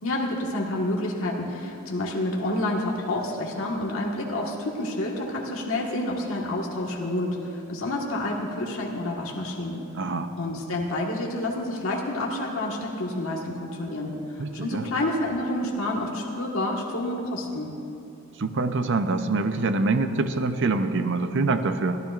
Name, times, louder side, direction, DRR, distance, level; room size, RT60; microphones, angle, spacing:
voice 1, 0.0-9.8 10.4-17.7, left 1 dB, 65° left, -2 dB, 1.6 m, -29 dB
voice 2, 10.0-10.3 14.4-14.9 18.4-22.0, right 3 dB, 55° right, 8 dB, 0.7 m, -25 dB
23.0 x 15.0 x 2.5 m, 2.7 s
head